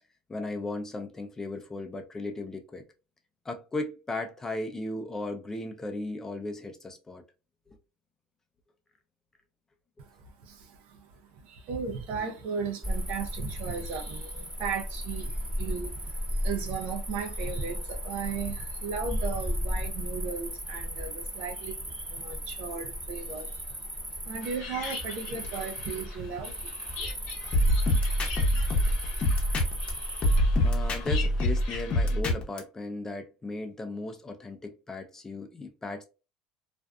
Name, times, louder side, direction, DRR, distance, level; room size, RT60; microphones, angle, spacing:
voice 1, 0.3-2.8 3.4-7.2 7.7-7.8 30.6-36.0, left 2 dB, 15° left, 0.5 m, -36 dB
voice 2, 10.0-28.1, right 5 dB, 65° right, 0.6 m, -37 dB
Cricket, 12.8-31.7, equal, 10° right, 1.0 m, -35 dB
sound 1, 24.4-32.2, left 5 dB, 75° left, 0.8 m, -43 dB
sound 2, 27.5-29.9 30.2-32.6, left 1 dB, 40° left, 0.8 m, -25 dB
2.5 x 2.3 x 2.2 m
supercardioid pair, 110°, 3 cm